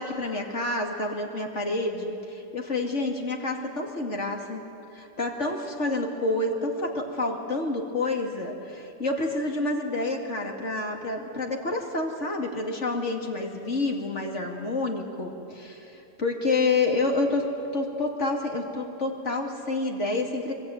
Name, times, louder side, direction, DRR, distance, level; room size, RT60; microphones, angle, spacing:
voice 1, 0.0-4.6 4.9-20.5, left 2 dB, 45° left, 1 dB, 2.8 m, -28 dB
24.5 x 23.0 x 9.4 m, 2.9 s
omnidirectional pair, 1.7 m